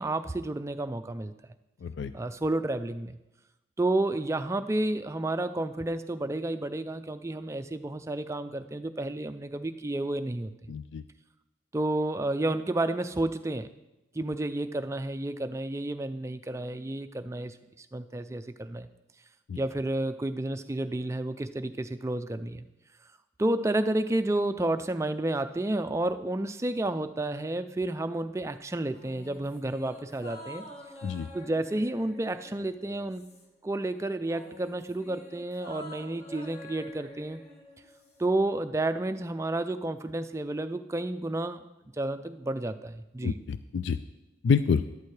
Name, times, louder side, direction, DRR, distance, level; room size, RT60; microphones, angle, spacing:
voice 1, 0.0-1.3 2.1-3.2 3.8-10.5 11.7-13.7 14.1-18.9 19.6-22.6 23.4-30.6 31.3-33.3 33.6-37.4 38.2-41.6 42.0-43.4, right 2 dB, 15° right, 10 dB, 0.3 m, -31 dB
voice 2, 1.8-2.1 10.7-11.0 19.5-19.6 31.0-31.3 43.2-44.0 44.4-44.8, left 6 dB, 65° left, 12 dB, 0.3 m, -27 dB
sound 1, 28.9-33.7 34.0-38.3 38.6-38.7, left 1 dB, 35° left, 1.2 m, -48 dB
13.0 x 11.5 x 3.3 m, 0.99 s
head